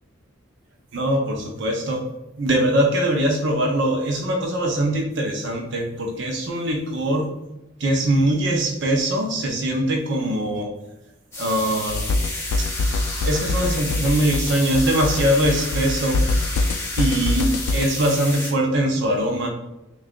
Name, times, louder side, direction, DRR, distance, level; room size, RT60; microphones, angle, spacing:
voice 1, 0.9-2.1 2.4-7.4 7.8-10.8 11.4-12.1 12.6-12.7 13.2-16.2 17.0-19.5, right 1 dB, 60° right, 2 dB, 0.6 m, -22 dB
sound 1, 11.3-18.5, left 2 dB, 15° left, 0.9 m, -31 dB
sound 2, 11.9-17.9, left 2 dB, 85° left, 0.3 m, -24 dB
3.3 x 2.4 x 3.6 m, 0.95 s
head